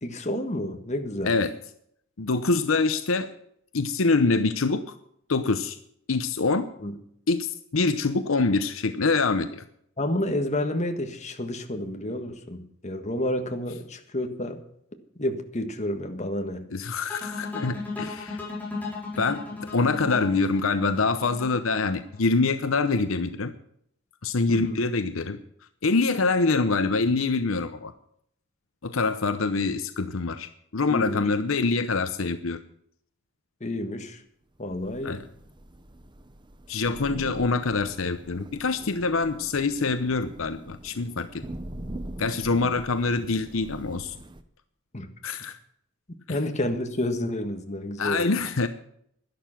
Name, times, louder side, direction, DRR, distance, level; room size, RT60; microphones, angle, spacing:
voice 1, 0.0-1.3 6.8-6.9 10.0-14.6 15.2-16.6 24.5-24.8 30.9-31.3 33.6-34.2 34.6-35.2 44.9-45.1 46.3-48.3, left 1 dB, 35° left, 5 dB, 1.6 m, -30 dB
voice 2, 1.2-1.5 2.2-3.3 3.7-4.8 5.3-5.8 6.1-6.7 7.3-9.6 16.7-18.4 19.2-19.4 19.7-23.5 24.2-25.4 25.8-27.9 28.8-32.6 35.0-35.2 36.7-41.4 42.2-44.1 45.2-45.6 46.3-46.4 48.0-48.7, left 3 dB, 75° left, 10 dB, 0.8 m, -25 dB
sound 1, 17.1-22.2, left 3 dB, 10° left, 4.2 m, -36 dB
Thunder / Rain, 34.7-44.4, right 1 dB, 20° right, 0.8 m, -42 dB
12.0 x 11.0 x 5.9 m, 0.68 s
head